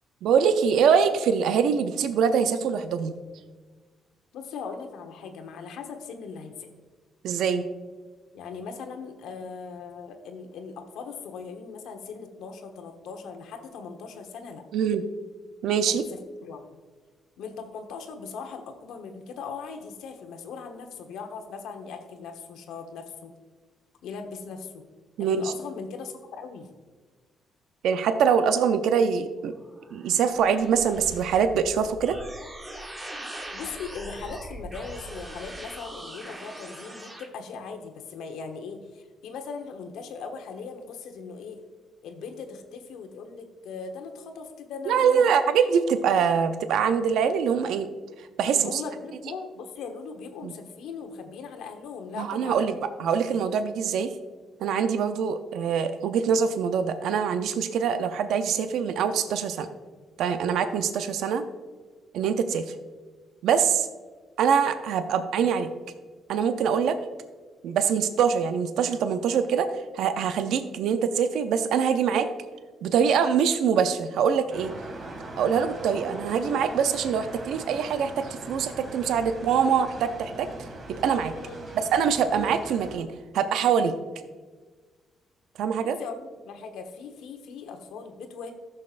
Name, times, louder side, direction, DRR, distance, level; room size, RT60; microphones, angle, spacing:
voice 1, 0.2-3.2 7.2-7.7 14.7-15.0 15.6-16.0 25.2-25.5 27.8-29.5 29.9-32.2 44.9-47.9 48.2-48.8 50.4-50.5 52.2-54.1 54.6-59.7 60.2-61.4 62.1-62.7 63.4-63.9 64.4-65.7 66.3-67.0 67.6-69.7 69.9-72.3 72.8-74.7 75.4-81.3 81.9-83.1 83.3-83.9 85.6-86.0, right 7 dB, 80° right, 9 dB, 0.5 m, -24 dB
voice 2, 4.3-6.7 8.3-14.6 15.9-16.6 17.4-23.3 24.0-24.8 25.2-26.7 33.5-41.6 42.0-45.4 48.5-52.8 53.2-53.3 81.4-81.6 86.0-88.5, left 5 dB, 85° left, 5 dB, 1.0 m, -39 dB
sound 1, 29.6-37.3, right 1 dB, 20° right, 1.6 m, -41 dB
sound 2, 74.5-83.0, right 2 dB, 50° right, 2.1 m, -41 dB
14.5 x 6.4 x 2.5 m, 1.4 s
cardioid pair, 90°, 0 cm